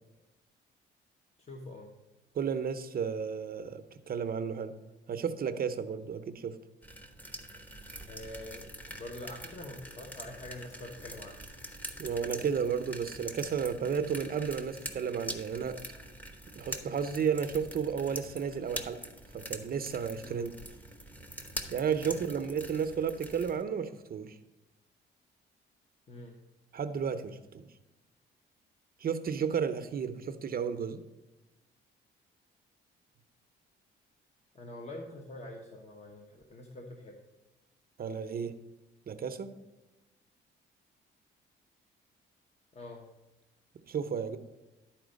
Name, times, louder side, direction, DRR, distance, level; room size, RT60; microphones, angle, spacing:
voice 1, 1.5-1.9 8.1-8.7 9.0-11.4 20.2-20.5 22.0-22.4 26.1-26.3 34.5-37.2 42.7-43.1, left 1 dB, 35° left, 1 dB, 1.1 m, -45 dB
voice 2, 2.3-3.8 4.1-4.8 5.1-6.6 12.0-15.8 16.6-19.0 19.3-20.5 21.7-24.4 26.7-27.7 29.0-31.0 38.0-38.5 39.1-39.5 43.9-44.4, right 7 dB, 50° right, 9 dB, 0.6 m, -33 dB
sound 1, 6.8-23.6, right 1 dB, 10° left, 1.0 m, -44 dB
12.0 x 4.4 x 5.1 m, 1.0 s
cardioid pair, 90°, 20 cm